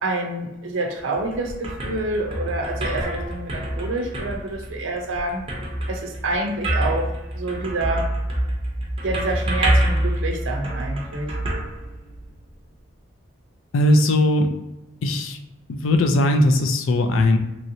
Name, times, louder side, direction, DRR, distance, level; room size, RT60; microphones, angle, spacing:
voice 1, 0.0-5.4 5.9-7.1 7.3-8.1 9.0-11.3, right 2 dB, 80° right, 2 dB, 0.5 m, -27 dB
sound 1, 1.0-12.5, right 1 dB, 30° right, 0.5 m, -26 dB
voice 2, 13.7-14.5 15.0-15.4 15.7-17.4, left 1 dB, 85° left, 5 dB, 0.4 m, -18 dB
3.0 x 2.8 x 2.6 m, 0.95 s
head